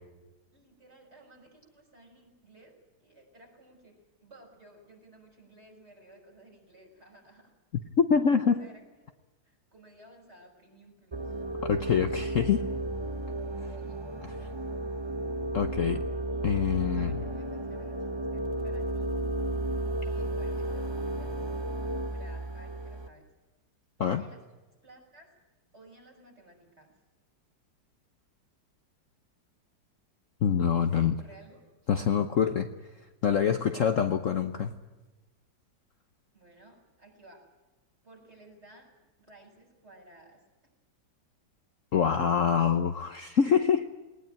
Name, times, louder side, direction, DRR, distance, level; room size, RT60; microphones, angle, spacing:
voice 1, 0.5-7.5 8.6-9.1 9.4-11.3 13.4-14.0 16.3-19.2 20.0-21.3 21.9-23.3 24.0-24.4 24.8-25.3 25.7-27.0 30.9-31.6 36.3-37.5 38.0-38.9 39.2-40.4 42.0-42.1, right 1 dB, 35° right, 0 dB, 6.6 m, -56 dB
voice 2, 8.0-8.6 11.6-12.6 15.5-16.0 16.4-17.2 24.0-24.2 30.4-31.1 31.9-32.7 33.2-34.7 41.9-43.9, left 7 dB, 50° left, 8 dB, 1.1 m, -25 dB
sound 1, 11.1-23.1, right 1 dB, 15° right, 1.1 m, -33 dB
20.0 x 19.5 x 9.0 m, 1.2 s
omnidirectional pair, 2.0 m